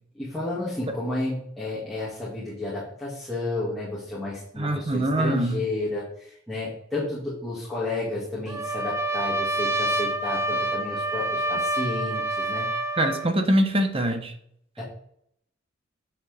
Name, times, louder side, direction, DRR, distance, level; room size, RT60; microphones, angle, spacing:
voice 1, 0.2-12.7 14.8-14.9, left 2 dB, ahead, -10 dB, 2.4 m, -31 dB
voice 2, 4.6-5.6 13.0-14.3, right 1 dB, 30° right, 6 dB, 1.2 m, -23 dB
Trumpet, 8.5-13.3, right 1 dB, 15° right, 0.7 m, -27 dB
10.5 x 6.2 x 3.6 m, 0.69 s
head